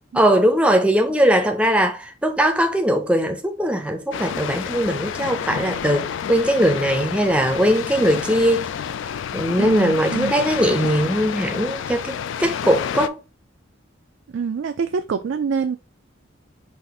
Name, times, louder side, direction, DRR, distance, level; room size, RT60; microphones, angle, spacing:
voice 1, 0.1-8.7 9.3-13.2, equal, 5° right, 0.5 m, -20 dB
sound 1, 4.1-13.1, left 8 dB, 70° left, 0.3 m, -29 dB
voice 2, 9.6-10.4 14.3-15.8, right 6 dB, 65° right, 0.3 m, -25 dB
4.1 x 2.5 x 4.6 m
head